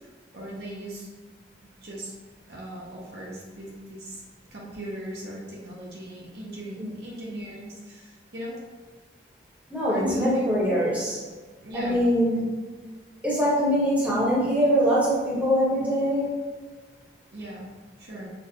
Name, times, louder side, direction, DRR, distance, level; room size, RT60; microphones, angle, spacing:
voice 1, 0.3-1.1 1.8-2.1 2.5-4.2 4.5-8.6 9.9-10.3 11.6-12.0 17.3-17.7 18.0-18.3, equal, 60° right, -4 dB, 0.9 m, -37 dB
voice 2, 9.7-11.2 11.7-12.5 13.2-16.3, equal, 10° right, -8 dB, 1.3 m, -23 dB
6.2 x 2.4 x 2.8 m, 1.4 s
head